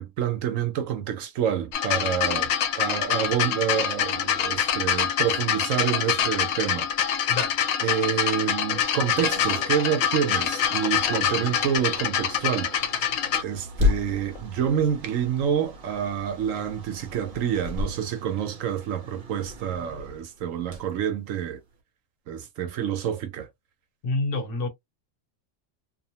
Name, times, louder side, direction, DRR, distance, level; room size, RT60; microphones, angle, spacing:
voice 1, 0.0-2.5 2.8-6.9 7.8-13.0 13.4-21.6 22.3-23.5, right 9 dB, 80° right, 1.1 m, -28 dB
sound 1, 1.7-13.4 14.4-14.5, left 8 dB, 85° left, 1.0 m, -25 dB
sound 2, 8.9-21.8, left 3 dB, 45° right, 0.9 m, -35 dB
voice 2, 24.0-24.7, left 2 dB, 70° left, 1.3 m, -27 dB
2.9 x 2.1 x 2.8 m
omnidirectional pair, 1.3 m